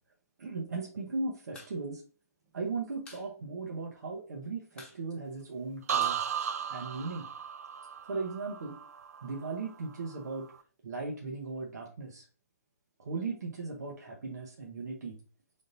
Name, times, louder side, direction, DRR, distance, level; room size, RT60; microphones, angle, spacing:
voice 1, 0.4-2.0 2.5-6.3 6.7-7.3 8.1-8.8 9.2-10.5 10.8-12.3 13.0-15.2, right 4 dB, 85° right, 0 dB, 0.9 m, -37 dB
sound 1, 1.5-1.8 2.0-2.1 2.4-3.3 3.6-3.7 4.0-4.4 4.7-7.1, left 3 dB, 10° left, 0.9 m, -52 dB
sound 2, 5.9-9.7 10.1-10.6, right 8 dB, 65° right, 0.4 m, -35 dB
3.8 x 3.6 x 2.6 m, 0.38 s
hypercardioid pair, 155°, 9 cm